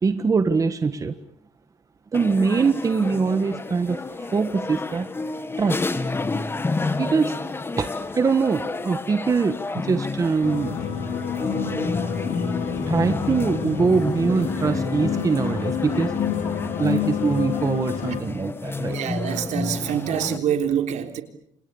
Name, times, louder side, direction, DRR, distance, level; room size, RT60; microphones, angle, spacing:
voice 1, 0.0-1.1 2.1-4.0 4.3-5.1 5.6-5.9 7.0-7.3 7.8-10.8 12.9-16.1 16.8-19.0, right 5 dB, 25° right, 10 dB, 1.4 m, -23 dB
sound 1, 2.1-20.4, left 3 dB, 20° left, 1.8 m, -31 dB
sound 2, 10.4-18.2, left 7 dB, 75° left, 4.6 m, -28 dB
voice 2, 18.9-21.2, right 9 dB, 70° right, 7 dB, 3.6 m, -25 dB
29.0 x 28.5 x 7.1 m, 0.71 s
cardioid pair, 135°, 13 cm